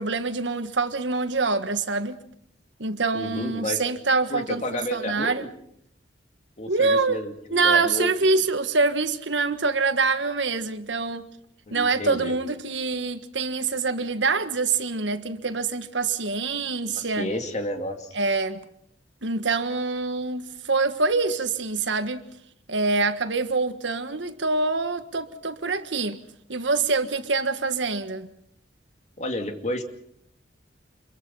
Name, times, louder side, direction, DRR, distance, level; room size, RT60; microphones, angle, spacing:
voice 1, 0.0-2.2 2.8-5.5 6.7-7.2 7.5-11.3 11.7-17.3 18.1-18.6 19.2-22.2 22.7-26.2 26.5-28.3, right 3 dB, 80° right, 1.5 m, -25 dB
voice 2, 3.1-3.8 4.3-5.5 6.6-8.1 11.7-12.3 17.1-18.1 29.2-29.8, left 1 dB, 40° left, 2.5 m, -31 dB
26.5 x 22.5 x 5.6 m
head